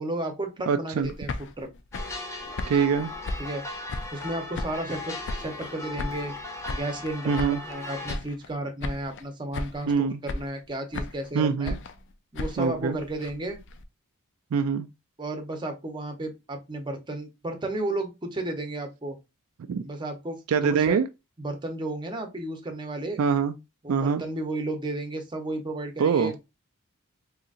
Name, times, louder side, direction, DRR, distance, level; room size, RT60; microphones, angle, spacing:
voice 1, 0.0-1.7 3.4-3.6 4.1-6.3 6.7-11.8 12.3-13.6 15.2-19.2 19.8-20.4 20.7-21.0 21.4-23.2 23.8-26.3, right 1 dB, 20° right, 0.7 m, -33 dB
voice 2, 0.7-1.1 2.7-3.1 7.3-7.6 9.9-10.2 11.3-11.8 12.6-13.0 14.5-14.9 19.7-19.8 20.5-21.1 23.2-23.5 23.9-24.2 26.0-26.3, right 6 dB, 70° right, 0.3 m, -24 dB
sound 1, 1.0-4.3 4.5-5.7 6.0-7.8 8.1-8.6 8.8-9.3 9.5-10.0 10.3-11.3 11.7-13.8, left 2 dB, 55° left, 0.4 m, -36 dB
sound 2, 1.9-8.2, left 2 dB, 15° left, 0.7 m, -37 dB
3.9 x 2.8 x 2.4 m
head